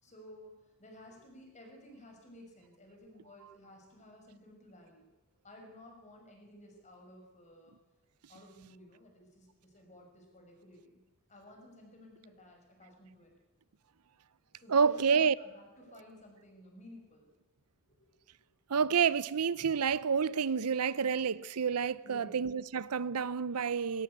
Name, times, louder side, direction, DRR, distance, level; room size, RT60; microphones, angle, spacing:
voice 1, 0.0-0.5 0.8-5.1 5.4-7.7 8.3-11.0 11.3-13.4 14.6-17.3 17.9-18.4 22.0-22.4, left 1 dB, 30° left, 5.8 m, -54 dB
voice 2, 14.7-15.3 18.7-24.0, right 6 dB, 90° right, 0.6 m, -29 dB
20.5 x 17.5 x 8.4 m
head